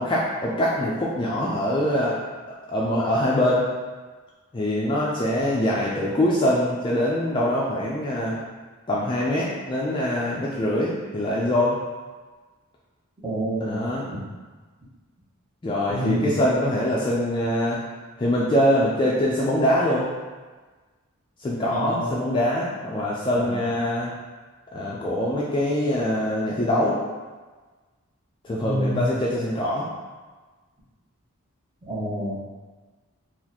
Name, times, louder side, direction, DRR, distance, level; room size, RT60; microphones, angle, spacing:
voice 1, 0.0-2.2 2.7-3.7 4.5-8.4 8.9-11.8 13.6-14.1 15.6-17.8 18.2-20.1 21.4-24.1 24.7-27.0 28.4-29.9, left 1 dB, 20° left, -5 dB, 0.4 m, -23 dB
voice 2, 13.2-13.8 15.9-16.3 21.7-22.1 23.4-23.6 28.6-29.1 31.9-32.3, equal, 20° right, -8 dB, 0.9 m, -27 dB
2.9 x 2.5 x 4.0 m, 1.3 s
head